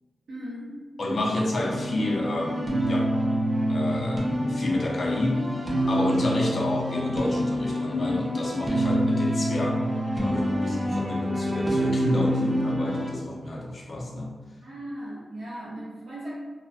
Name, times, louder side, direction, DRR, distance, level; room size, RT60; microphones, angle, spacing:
voice 1, 0.3-0.8 14.6-16.3, right 1 dB, 65° right, -12 dB, 0.8 m, -38 dB
voice 2, 1.0-3.1 3.7-14.3, left 2 dB, 45° left, -1 dB, 0.4 m, -29 dB
sound 1, 1.5-13.1, equal, 25° right, 0.4 m, -27 dB
2.3 x 2.1 x 2.6 m, 1.4 s
wide cardioid pair, 125°, 0 cm